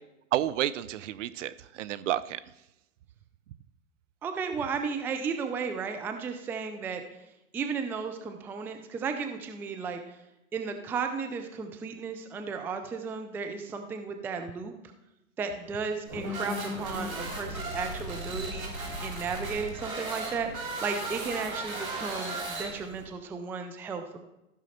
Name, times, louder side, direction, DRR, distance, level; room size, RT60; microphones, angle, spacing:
voice 1, 0.3-2.4, right 12 dB, 60° right, 16 dB, 0.7 m, -30 dB
voice 2, 4.2-7.0 7.5-10.0 10.5-14.7 15.4-18.7 19.0-24.2, right 5 dB, 5° right, 6 dB, 0.4 m, -34 dB
sound 1, 16.1-23.1, right 1 dB, 90° right, 3.4 m, -36 dB
14.5 x 6.2 x 4.2 m, 0.93 s
hypercardioid pair, 120°, 41 cm